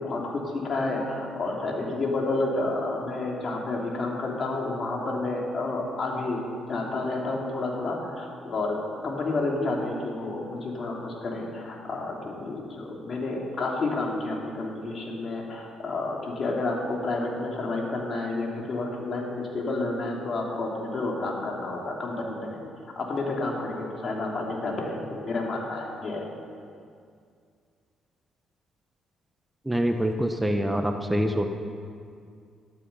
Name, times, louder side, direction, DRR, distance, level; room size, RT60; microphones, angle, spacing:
voice 1, 0.0-8.8 9.0-26.3, left 2 dB, 50° left, -1 dB, 3.4 m, -30 dB
voice 2, 29.6-31.5, equal, 10° right, 5 dB, 1.1 m, -25 dB
13.0 x 12.5 x 5.7 m, 2.3 s
supercardioid pair, 55°, 0 cm